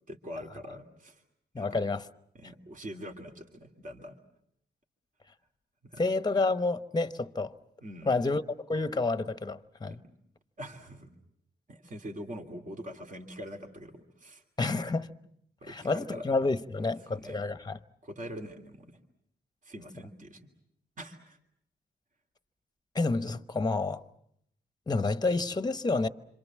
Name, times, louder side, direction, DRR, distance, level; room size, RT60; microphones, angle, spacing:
voice 1, 0.1-1.2 1.6-1.8 2.3-4.1 5.8-6.0 7.8-8.1 9.8-10.0 10.6-11.1 11.7-14.4 15.6-16.4 16.8-17.4 18.0-19.0 19.6-20.4 21.0-21.4, equal, 45° right, 2.8 m, -43 dB
voice 2, 1.5-2.0 6.0-7.5 8.1-8.4 8.7-9.9 14.6-15.1 15.6-17.8 22.9-24.0 24.9-26.1, left 3 dB, 20° left, 1.0 m, -29 dB
26.5 x 26.5 x 7.4 m
cardioid pair, 85°, 19 cm